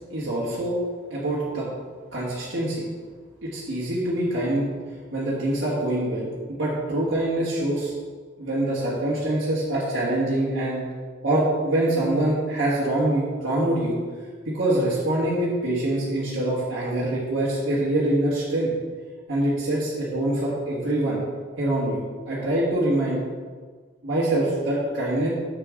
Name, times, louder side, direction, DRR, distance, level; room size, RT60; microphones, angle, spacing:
voice 1, 0.1-0.8 1.1-1.6 2.1-2.8 3.4-4.7 5.1-7.9 8.4-10.8 11.2-14.0 14.4-18.7 19.3-21.2 21.6-23.2 24.0-25.3, right 1 dB, 70° right, -9 dB, 1.7 m, -24 dB
6.8 x 6.7 x 3.8 m, 1.5 s
head